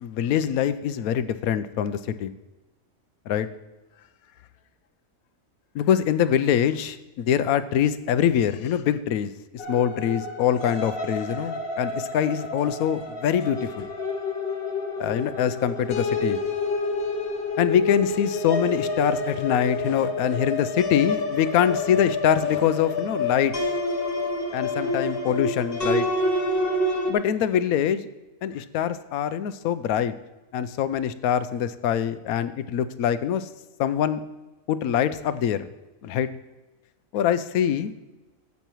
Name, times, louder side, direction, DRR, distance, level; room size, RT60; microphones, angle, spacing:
voice 1, 0.0-2.3 3.3-3.5 5.7-9.3 9.7-13.9 15.0-16.4 17.6-23.6 24.5-26.1 27.1-28.1 28.4-30.1 30.5-33.5 33.8-34.2 34.7-35.7 36.0-36.3 37.1-37.9, left 9 dB, 85° left, 13 dB, 1.0 m, -24 dB
sound 1, 9.6-27.1, left 2 dB, 45° left, 1.3 m, -28 dB
13.5 x 8.3 x 3.0 m, 1.1 s
omnidirectional pair, 1.5 m